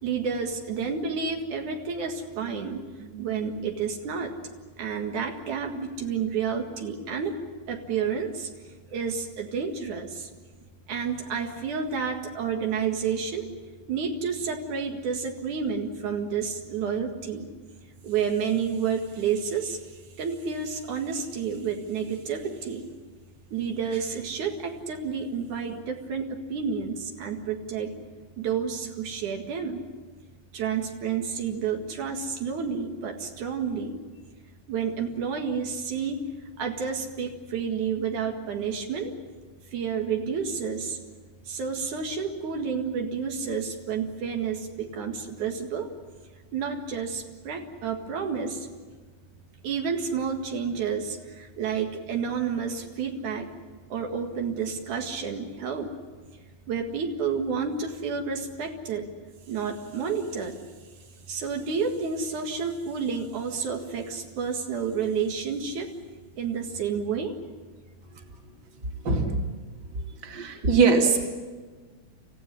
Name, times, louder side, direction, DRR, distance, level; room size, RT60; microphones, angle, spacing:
voice 1, 0.0-4.4 4.8-7.4 7.7-8.5 8.9-10.3 10.9-13.5 13.9-17.5 18.0-19.8 20.2-22.9 23.5-27.9 28.4-29.8 30.5-34.0 34.7-36.3 36.6-39.1 39.7-41.0 41.5-45.9 46.5-48.7 49.6-53.5 53.9-55.9 56.7-59.1 59.5-60.6 61.3-65.9 66.4-67.4, right 6 dB, 85° right, 3 dB, 3.4 m, -30 dB
voice 2, 69.0-69.4 70.2-71.2, right 4 dB, 35° right, 2 dB, 2.8 m, -21 dB
28.0 x 15.0 x 10.0 m, 1.4 s
omnidirectional pair, 3.4 m